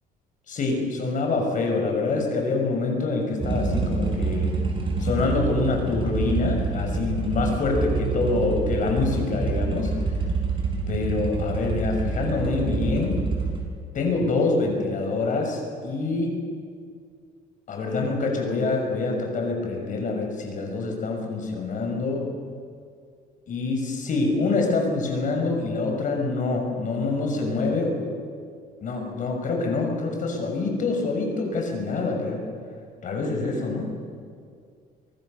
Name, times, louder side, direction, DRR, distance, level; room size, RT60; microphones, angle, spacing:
voice 1, 0.5-4.6 5.0-9.9 10.9-13.3 13.9-16.4 17.7-22.3 23.5-28.1 28.8-32.4 33.0-34.0, left 3 dB, 50° left, 2 dB, 6.5 m, -26 dB
sound 1, 3.4-13.6, right 4 dB, 30° right, 5.7 m, -27 dB
24.5 x 23.0 x 6.9 m, 2.2 s
cardioid pair, 110°, 17 cm